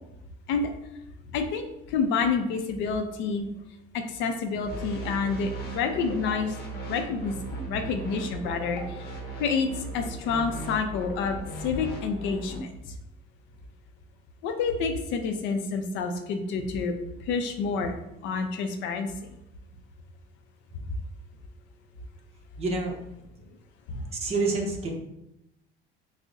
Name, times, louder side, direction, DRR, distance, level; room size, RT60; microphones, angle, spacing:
voice 1, 1.3-3.5 3.9-6.5 6.8-7.4 7.6-8.8 9.4-9.7 9.9-12.7 14.4-16.9 17.3-19.1 23.9-24.0, left 5 dB, 70° left, 6 dB, 0.5 m, -28 dB
sound 1, 4.7-12.6, right 2 dB, 50° left, 0.8 m, -38 dB
voice 2, 22.6-23.0 23.9-24.9, right 3 dB, 30° right, 1 dB, 0.7 m, -28 dB
6.0 x 2.1 x 2.6 m, 0.86 s
cardioid pair, 155°, 20 cm